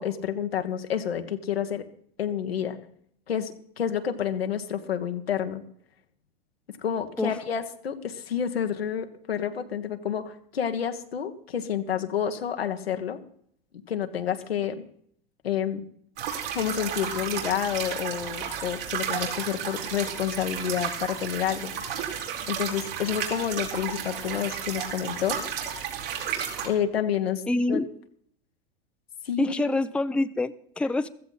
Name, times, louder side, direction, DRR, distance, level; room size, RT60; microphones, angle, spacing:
voice 1, 0.0-1.8 2.2-2.8 3.3-5.6 6.7-13.2 13.9-14.8 15.4-15.8 16.5-22.0 22.5-25.4 26.6-27.4 27.7-27.8 29.2-29.8, left 9 dB, 90° left, 6 dB, 1.5 m, -29 dB
sound 1, 16.2-26.7, right 8 dB, 70° right, 4.1 m, -33 dB
voice 2, 27.5-27.9 29.4-31.1, left 2 dB, 5° left, 11 dB, 0.6 m, -26 dB
15.0 x 14.5 x 4.1 m, 0.65 s
hypercardioid pair, 95°, 29 cm